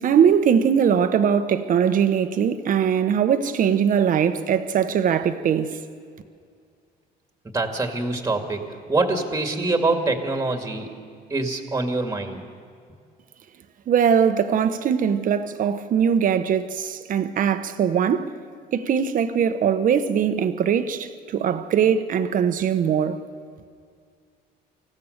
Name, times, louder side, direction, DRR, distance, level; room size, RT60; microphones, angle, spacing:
voice 1, 0.0-5.8 13.9-18.3 18.7-23.2, right 8 dB, 50° right, 1.1 m, -21 dB
voice 2, 7.5-10.9 11.3-12.4, right 3 dB, 15° right, 2.1 m, -25 dB
25.0 x 15.5 x 6.7 m
cardioid pair, 110°, 17 cm